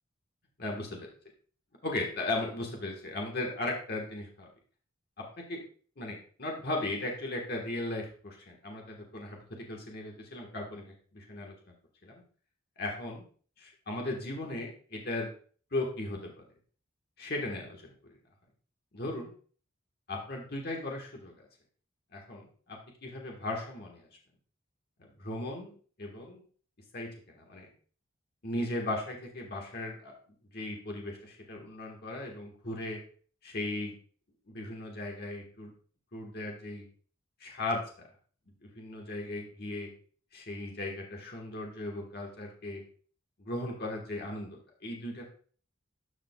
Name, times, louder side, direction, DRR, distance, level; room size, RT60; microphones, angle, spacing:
voice 1, 1.8-4.5 5.2-5.6 6.0-11.5 12.0-12.2 12.8-13.2 13.6-15.3 15.7-16.4 17.2-17.9 18.9-19.3 20.1-21.3 22.1-24.1 25.0-25.7 26.0-26.4 26.9-27.7 28.4-30.1 30.5-33.0 33.4-33.9 34.5-35.7 36.1-36.8 37.4-38.1 38.6-39.9 40.3-42.8 43.4-45.2, left 2 dB, 50° left, 0 dB, 1.4 m, -37 dB
12.5 x 5.0 x 2.3 m, 0.43 s
head